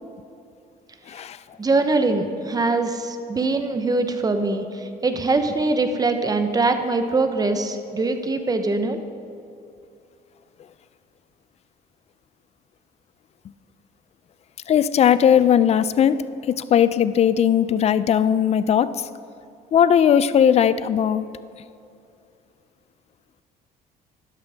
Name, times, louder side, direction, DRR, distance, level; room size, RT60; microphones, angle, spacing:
voice 1, 1.6-9.2, right 3 dB, 20° right, 7 dB, 0.9 m, -23 dB
voice 2, 14.7-18.9 19.7-21.3, left 9 dB, 40° left, 15 dB, 0.4 m, -18 dB
12.5 x 10.5 x 3.5 m, 2.6 s
cardioid pair, 110°, 17 cm